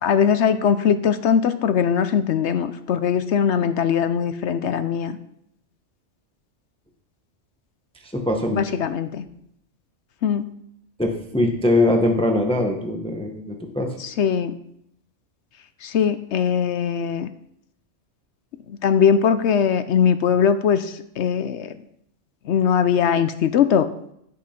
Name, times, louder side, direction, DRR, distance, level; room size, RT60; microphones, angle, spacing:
voice 1, 0.0-5.2 8.5-9.3 10.2-10.5 14.0-14.6 15.8-17.3 18.7-21.7 22.5-23.9, left 7 dB, 70° left, 12 dB, 0.9 m, -20 dB
voice 2, 8.0-8.6 11.0-13.9, left 1 dB, 5° left, 3 dB, 1.0 m, -22 dB
15.5 x 5.6 x 4.4 m, 0.74 s
omnidirectional pair, 1.3 m